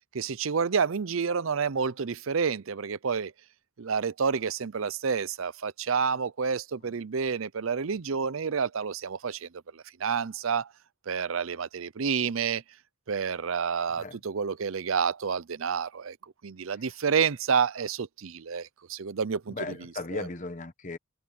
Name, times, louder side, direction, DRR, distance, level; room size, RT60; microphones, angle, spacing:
voice 1, 0.1-3.3 3.8-10.7 11.1-12.6 13.1-16.2 16.4-20.3, right 6 dB, 75° right, 0.6 m, -29 dB
voice 2, 19.5-21.0, left 3 dB, 35° left, 1.1 m, -36 dB
head